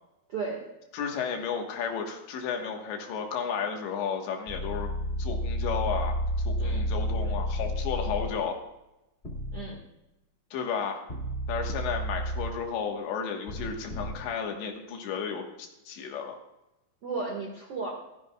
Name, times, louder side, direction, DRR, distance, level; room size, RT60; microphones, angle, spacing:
voice 1, 0.3-0.7 6.6-6.8 8.0-8.2 9.5-9.8 17.0-17.9, right 4 dB, 55° right, -2 dB, 1.6 m, -34 dB
voice 2, 0.9-4.9 5.2-6.2 6.5-8.6 10.5-11.0 11.5-16.4, left 6 dB, 75° left, 3 dB, 3.5 m, -33 dB
sound 1, 4.5-8.3 9.2-9.6 11.1-12.5 13.5-14.1, equal, 25° left, 1.3 m, -31 dB
15.0 x 14.5 x 2.4 m, 0.92 s
omnidirectional pair, 5.5 m